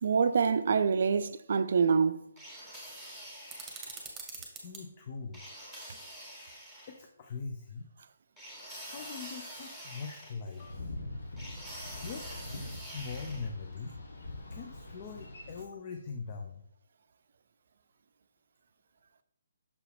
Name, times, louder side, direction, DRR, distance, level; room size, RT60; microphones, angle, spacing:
voice 1, 0.0-2.2, right 5 dB, 55° right, 0.4 m, -26 dB
sound 1, 2.4-4.1 5.3-7.0 8.4-10.7 11.4-13.5, equal, 10° left, 2.2 m, -46 dB
sound 2, 3.5-4.8, right 4 dB, 10° right, 1.6 m, -44 dB
voice 2, 4.6-5.4 6.9-7.9 8.9-10.9 12.0-12.2 12.6-13.9 14.5-16.6, left 5 dB, 35° left, 0.7 m, -42 dB
Boat Water vehicle, 10.6-15.6, left 2 dB, 65° left, 1.4 m, -43 dB
6.9 x 4.6 x 3.5 m
figure-of-eight pair, 145°, 0 cm